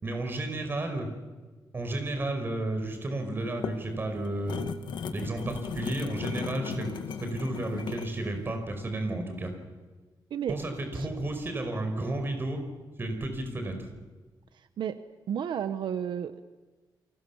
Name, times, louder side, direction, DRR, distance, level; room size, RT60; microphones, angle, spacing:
voice 1, 0.0-1.1 1.7-4.6 5.1-6.9 7.2-9.5 10.5-12.6 13.0-13.8, right 2 dB, 30° right, 6 dB, 4.9 m, -32 dB
sound 1, 3.4-8.2, left 7 dB, 80° left, 1.9 m, -36 dB
voice 2, 14.5-15.0 15.3-16.4, right 9 dB, 85° right, 11 dB, 1.0 m, -32 dB
30.0 x 24.5 x 7.1 m, 1.3 s
wide cardioid pair, 175°, 8 cm